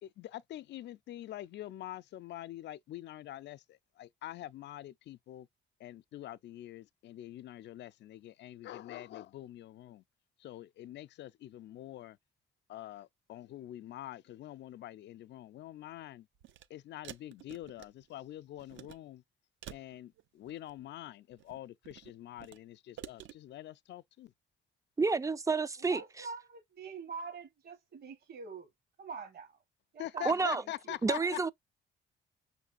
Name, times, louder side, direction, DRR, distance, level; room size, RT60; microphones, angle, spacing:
voice 1, 0.0-5.5 5.8-10.0 10.4-12.2 12.7-16.3 16.7-19.2 19.7-24.3 30.0-31.5, left 13 dB, 60° left, 0.4 m, -45 dB
sound 1, 16.4-16.7 17.0-18.2 18.6-19.0 19.6-20.8 21.3-22.6 23.0-23.3, right 11 dB, 75° right, 0.6 m, -50 dB
voice 2, 25.0-26.3 30.2-30.6 31.0-31.5, right 4 dB, 15° right, 0.3 m, -30 dB
voice 3, 25.9-28.7 29.0-29.6 29.9-31.3, right 5 dB, 50° right, 1.0 m, -45 dB
5.8 x 3.2 x 2.4 m
cardioid pair, 90°, 20 cm